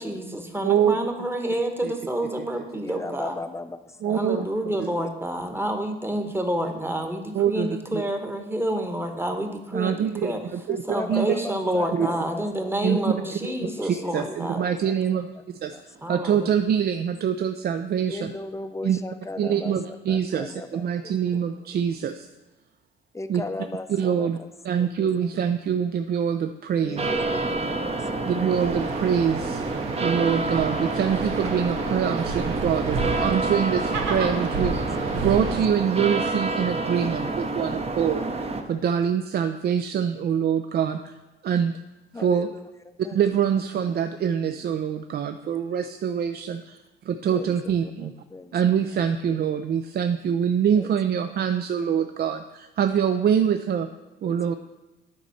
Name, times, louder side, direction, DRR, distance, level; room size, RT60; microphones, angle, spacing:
voice 1, 0.0-3.3 4.1-10.4 10.9-14.6 16.0-16.5, right 1 dB, 10° right, 5 dB, 1.1 m, -28 dB
voice 2, 0.6-1.0 1.8-1.9 2.4-2.5 4.0-4.5 4.8-4.9 7.3-8.0 9.7-10.8 11.1-11.3 11.9-12.1 12.8-13.1 13.8-15.3 15.6-15.8 16.1-18.2 18.8-19.0 19.4-22.3 23.3-23.4 23.9-24.4 24.6-27.1 28.2-29.6 30.0-41.2 41.4-41.7 42.2-42.5 43.1-46.8 47.1-48.1 48.5-53.9 54.2-54.5, right 8 dB, 55° right, 8 dB, 0.4 m, -25 dB
voice 3, 2.8-5.0 10.7-16.3 18.1-21.7 23.1-25.4 26.8-28.6 31.8-32.4 33.8-33.9 34.2-34.6 35.1-35.3 42.1-43.2 45.4-45.6 46.5-46.6 47.3-48.8 49.3-49.4 50.7-50.9 51.8-51.9 54.2-54.5, left 2 dB, 15° left, 10 dB, 0.5 m, -38 dB
sound 1, 27.0-38.6, right 3 dB, 30° right, 0.8 m, -28 dB
sound 2, 28.5-35.6, right 3 dB, 85° right, 1.0 m, -31 dB
9.0 x 4.1 x 5.7 m, 1.1 s
cardioid pair, 90°, 20 cm